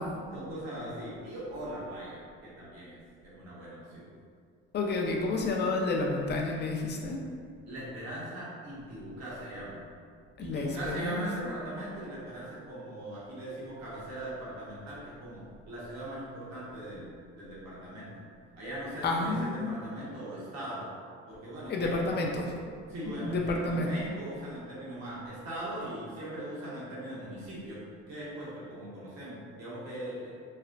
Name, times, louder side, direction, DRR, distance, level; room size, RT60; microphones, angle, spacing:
voice 1, 0.3-4.1 7.7-9.8 10.4-18.3 18.5-20.9 21.3-22.1 22.9-27.8 28.1-30.3, right 1 dB, 60° right, -8 dB, 1.1 m, -40 dB
voice 2, 4.7-7.2 10.4-11.5 19.0-19.8 21.7-22.5 23.0-23.9, left 2 dB, 35° left, 0 dB, 0.5 m, -30 dB
3.1 x 2.1 x 2.4 m, 2.1 s
supercardioid pair, 75°, 29 cm